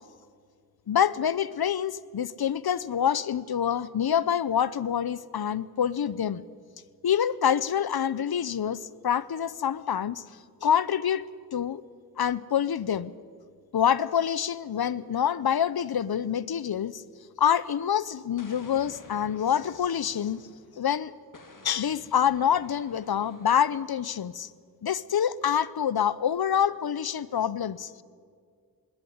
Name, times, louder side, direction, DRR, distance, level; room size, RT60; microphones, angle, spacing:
voice 1, 0.9-6.5 7.0-10.2 10.6-11.2 11.5-11.8 12.2-13.1 13.7-17.0 17.4-20.4 20.8-21.1 21.6-24.5 24.8-28.0, left 8 dB, 75° left, 19 dB, 0.7 m, -26 dB
Explosion, 18.4-20.8 21.3-23.9, left 3 dB, 55° left, 2.7 m, -51 dB
20.5 x 16.5 x 9.5 m, 2.1 s
wide cardioid pair, 70°, 37 cm